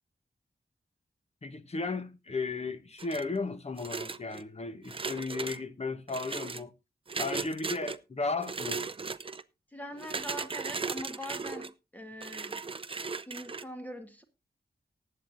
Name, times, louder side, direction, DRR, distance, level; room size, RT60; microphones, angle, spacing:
voice 1, 1.4-6.7 7.2-8.9, left 3 dB, 40° left, 1.1 m, -35 dB
sound 1, 3.0-3.4 3.8-4.4 4.8-5.6 6.1-6.6 7.1-8.0 8.4-9.4 10.0-11.7 12.2-13.6, right 4 dB, 35° right, 0.5 m, -37 dB
voice 2, 9.7-12.7 13.3-14.2, equal, 10° left, 1.5 m, -43 dB
19.0 x 8.7 x 2.6 m
wide cardioid pair, 100°, 17 cm